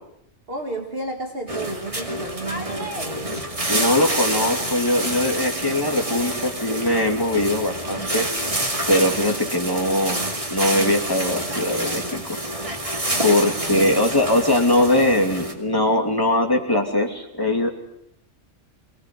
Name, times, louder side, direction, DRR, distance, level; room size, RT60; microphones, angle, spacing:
voice 1, 0.5-3.5 13.3-14.0, right 2 dB, 50° right, 2 dB, 2.1 m, -33 dB
sound 1, 1.5-15.5, right 1 dB, 25° right, 2.4 m, -28 dB
voice 2, 3.7-8.3 8.9-10.2 10.5-12.4 13.2-17.7, left 1 dB, 15° left, 1 dB, 2.8 m, -21 dB
24.5 x 18.5 x 7.7 m, 0.79 s
omnidirectional pair, 1.3 m